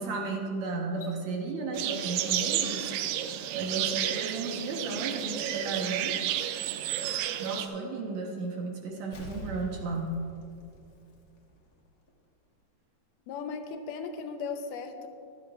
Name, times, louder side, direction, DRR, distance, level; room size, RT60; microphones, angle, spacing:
voice 1, 0.0-2.8 3.5-6.2 7.4-10.2, right 3 dB, 65° right, 0 dB, 2.2 m, -34 dB
sound 1, 0.9-1.2 2.9-3.2 5.0-5.3, left 6 dB, 45° left, 2.9 m, -53 dB
sound 2, 1.7-7.7, right 11 dB, 85° right, 2.2 m, -31 dB
Explosion, 9.1-11.7 12.1-12.2, right 1 dB, 60° left, 1.0 m, -45 dB
voice 2, 13.3-15.1, left 5 dB, 80° left, 6 dB, 2.3 m, -37 dB
24.0 x 8.6 x 2.4 m, 2.5 s
omnidirectional pair, 3.8 m